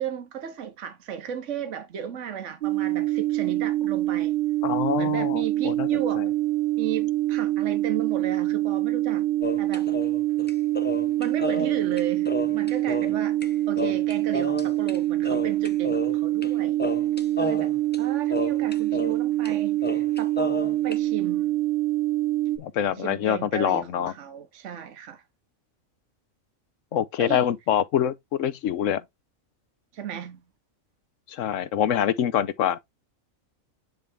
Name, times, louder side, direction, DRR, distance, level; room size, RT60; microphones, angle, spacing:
voice 1, 0.0-4.3 5.0-6.3 6.7-9.3 9.6-9.9 11.2-13.4 13.7-16.8 17.4-21.5 22.9-25.2 27.2-27.5 29.9-30.4, right 8 dB, 65° right, 1.3 m, -35 dB
sound 1, 2.6-22.6, right 15 dB, 45° right, 1.2 m, -25 dB
voice 2, 4.6-6.2 22.6-24.1 26.9-29.0 31.3-32.8, left 10 dB, 70° left, 1.0 m, -25 dB
sound 2, 9.4-13.5 13.8-15.0 15.2-16.5 16.8-19.2 19.5-19.6 19.8-21.0, left 2 dB, 15° left, 0.5 m, -32 dB
9.4 x 3.3 x 3.4 m
omnidirectional pair, 1.4 m